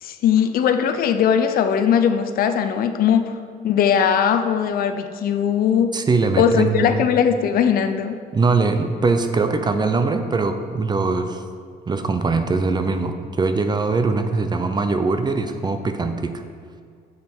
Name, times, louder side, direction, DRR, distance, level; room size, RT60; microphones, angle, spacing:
voice 1, 0.0-3.4 3.6-6.0 6.4-8.2, left 8 dB, 60° left, 8 dB, 0.6 m, -19 dB
voice 2, 5.9-7.0 8.3-11.4 11.9-16.3, right 3 dB, 25° right, 8 dB, 0.6 m, -21 dB
7.5 x 7.3 x 4.5 m, 2.2 s
cardioid pair, 110°, 17 cm